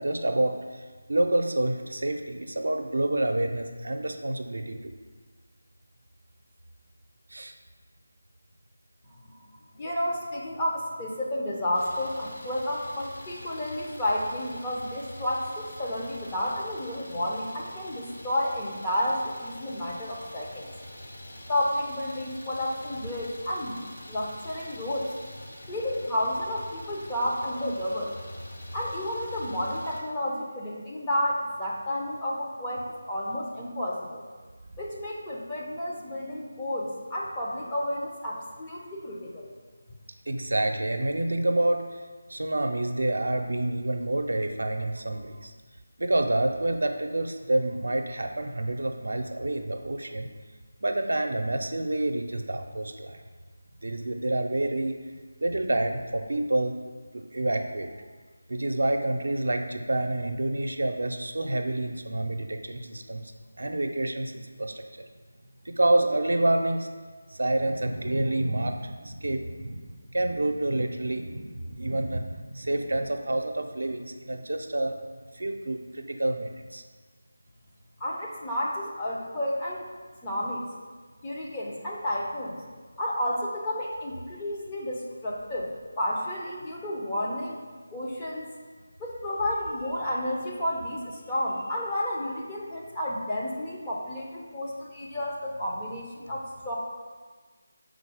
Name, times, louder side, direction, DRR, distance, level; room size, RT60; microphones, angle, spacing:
voice 1, 0.0-4.9 7.3-7.5 34.7-34.8 40.3-42.0 42.3-45.5 46.0-50.3 50.8-53.2 53.8-54.9 55.4-56.7 57.1-57.9 58.5-63.3 63.6-64.8 65.6-66.9 67.3-75.0 75.3-76.8, right 1 dB, 80° right, 5 dB, 0.6 m, -28 dB
voice 2, 9.2-20.7 21.5-23.8 24.1-25.1 25.7-28.1 28.7-34.2 34.8-39.5 78.0-79.9 80.2-80.6 81.2-82.7 83.0-87.6 87.9-88.5 89.0-96.7, left 1 dB, 15° left, -5 dB, 0.7 m, -31 dB
Idling, 11.7-30.0, left 1 dB, 40° left, 1.1 m, -45 dB
5.2 x 4.0 x 4.8 m, 1.4 s
figure-of-eight pair, 170°, 0 cm